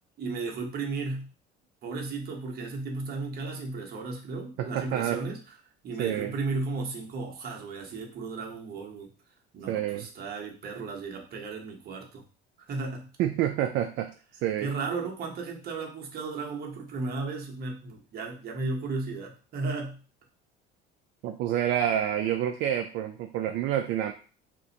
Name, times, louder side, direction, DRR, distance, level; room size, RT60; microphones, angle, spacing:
voice 1, 0.2-1.3 1.8-5.4 5.8-9.1 9.5-12.2 12.7-13.1 14.6-20.0, right 3 dB, 50° right, 1 dB, 1.0 m, -34 dB
voice 2, 4.6-5.2 6.0-6.4 9.7-10.1 13.2-14.1 14.4-14.7 21.2-24.1, right 11 dB, 65° right, 6 dB, 0.4 m, -28 dB
2.5 x 2.4 x 4.0 m, 0.37 s
cardioid pair, 115°, 21 cm